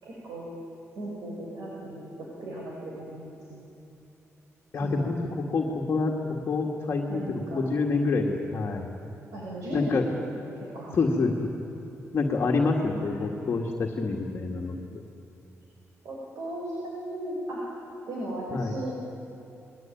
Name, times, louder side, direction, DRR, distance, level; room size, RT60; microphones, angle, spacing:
voice 1, 0.0-0.5 0.9-3.7 4.7-5.2 7.1-7.9 9.3-10.2 10.5-11.0 12.9-13.2 16.0-17.6 18.1-19.0, right 1 dB, 85° right, -3 dB, 5.9 m, -36 dB
voice 2, 4.7-6.2 6.5-7.2 7.5-8.9 9.7-10.0 10.9-11.5 12.1-14.8 18.5-18.8, left 3 dB, 40° left, -1 dB, 1.9 m, -27 dB
29.0 x 21.0 x 9.2 m, 2.8 s
wide cardioid pair, 175°, 5 cm